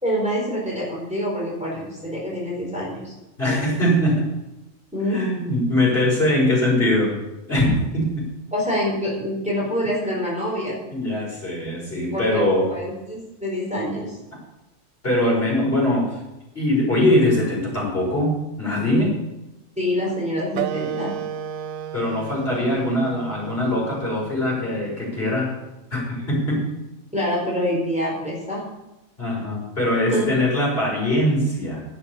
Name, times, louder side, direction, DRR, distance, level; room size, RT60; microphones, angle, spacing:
voice 1, 0.0-3.1 4.9-5.2 8.5-10.8 12.1-14.2 19.8-21.1 27.1-28.6 30.1-30.4, equal, 5° right, -4 dB, 4.2 m, -26 dB
voice 2, 3.4-4.2 5.1-7.1 7.5-8.3 10.9-12.7 15.0-16.1 16.5-19.1 21.9-25.5 25.9-26.6 29.2-31.8, left 1 dB, 45° left, -4 dB, 6.4 m, -22 dB
Wind instrument woodwind instrument, 20.5-25.7, right 10 dB, 90° right, 1.1 m, -34 dB
11.5 x 9.8 x 7.1 m, 0.97 s
omnidirectional pair, 1.4 m